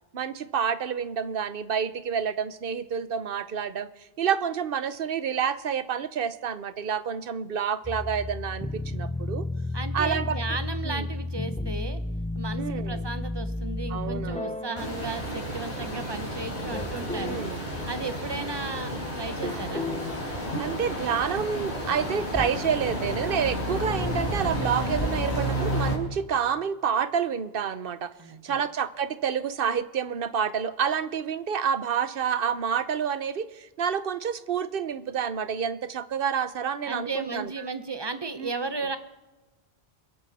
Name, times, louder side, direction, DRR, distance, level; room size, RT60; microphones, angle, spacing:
voice 1, 0.1-3.9 4.2-9.5 9.9-10.4 10.8-11.1 12.6-13.0 13.9-14.6 17.1-17.6 19.4-19.6 20.6-28.1 28.4-37.6 38.4-38.5, right 7 dB, 60° right, 13 dB, 1.0 m, -28 dB
sound 1, 7.8-16.2 16.7-17.6 19.4-21.1 22.2-24.8, left 2 dB, 10° left, 0.5 m, -34 dB
voice 2, 9.7-12.0 12.3-17.5 17.9-19.9 28.2-28.6 36.9-39.0, right 3 dB, 25° right, 10 dB, 0.9 m, -35 dB
sound 2, 14.8-25.9, equal, 40° left, 4.6 m, -31 dB
29.0 x 11.5 x 4.2 m, 1.2 s
omnidirectional pair, 1.1 m